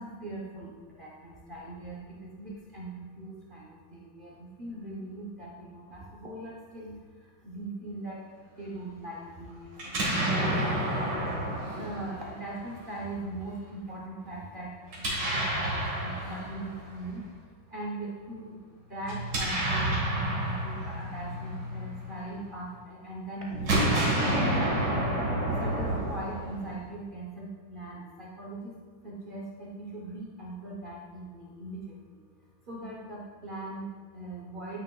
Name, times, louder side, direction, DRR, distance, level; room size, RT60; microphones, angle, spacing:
voice 1, 0.0-8.2 8.6-10.8 11.7-28.8 29.0-32.2 32.7-34.8, right 2 dB, 75° right, -5 dB, 0.4 m, -41 dB
Explosion, 9.8-12.8 14.9-17.1 19.0-22.5 23.5-26.9, right 1 dB, 60° right, 2.3 m, -29 dB
9.2 x 6.4 x 2.3 m, 1.5 s
omnidirectional pair, 2.2 m